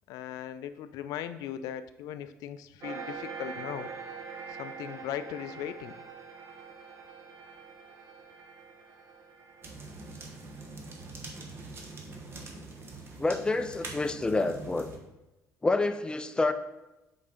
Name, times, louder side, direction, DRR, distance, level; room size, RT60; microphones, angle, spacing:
voice 1, 0.1-3.9 4.5-5.9, left 10 dB, 80° left, 12 dB, 0.4 m, -38 dB
sound 1, 2.8-11.8, right 5 dB, 60° right, 0.9 m, -44 dB
sound 2, 9.6-15.0, right 3 dB, 40° right, 1.2 m, -44 dB
voice 2, 13.2-14.9 15.6-16.5, left 2 dB, 15° left, 10 dB, 0.4 m, -28 dB
5.4 x 4.0 x 5.0 m, 0.99 s
cardioid pair, 105°, 6 cm